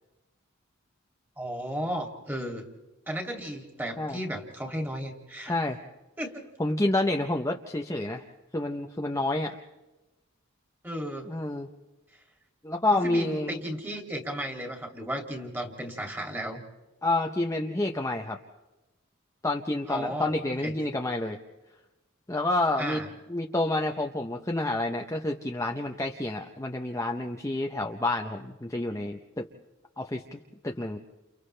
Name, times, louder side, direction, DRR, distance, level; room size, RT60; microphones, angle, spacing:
voice 1, 1.4-2.7 3.1-5.6 6.2-6.4 10.8-11.3 12.9-16.6 19.9-20.3 20.6-20.7 22.8-23.1, equal, 10° right, 2 dB, 2.6 m, -34 dB
voice 2, 5.5-5.8 6.6-8.2 8.5-9.6 11.3-11.7 12.6-13.6 17.0-18.4 19.4-21.4 22.3-23.0 23.3-29.5 30.0-31.0, left 2 dB, 15° left, 2 dB, 0.8 m, -29 dB
30.0 x 29.5 x 3.4 m, 1.0 s
head